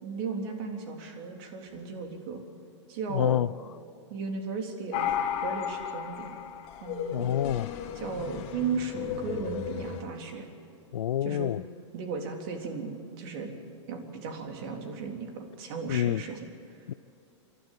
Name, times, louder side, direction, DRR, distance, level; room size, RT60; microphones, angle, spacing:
voice 1, 0.0-2.4 2.9-3.5 4.1-5.1 5.4-6.4 6.8-7.3 7.9-10.5 11.2-11.5 11.9-12.9 13.2-13.5 13.9-16.5, right 4 dB, 55° right, 3.7 m, -35 dB
voice 2, 3.1-3.5 7.1-7.7 10.9-11.6 15.9-16.2 16.9-17.0, left 11 dB, 85° left, 0.4 m, -27 dB
sound 1, 4.9-10.0, left 9 dB, 45° left, 1.7 m, -34 dB
29.0 x 12.5 x 8.6 m
hypercardioid pair, 120°, 16 cm